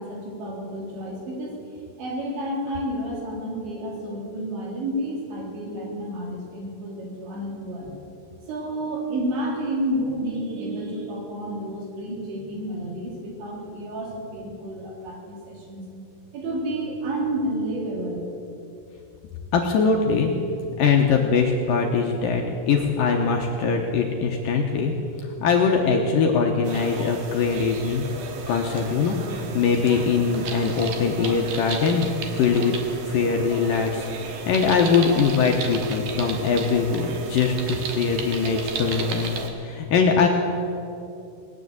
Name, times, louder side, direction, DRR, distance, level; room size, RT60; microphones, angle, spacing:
voice 1, 0.0-1.6 2.0-7.9 8.5-15.8 16.3-18.3, right 1 dB, 85° right, -2 dB, 5.2 m, -30 dB
voice 2, 19.5-20.3 20.8-24.9 25.4-28.1 28.5-32.1 32.3-32.8 33.1-34.1 34.5-39.3 39.6-40.3, left 5 dB, 75° left, 1 dB, 2.1 m, -22 dB
sound 1, 26.6-39.5, right 4 dB, 60° right, 2.4 m, -34 dB
19.0 x 9.8 x 7.9 m, 2.8 s
omnidirectional pair, 5.0 m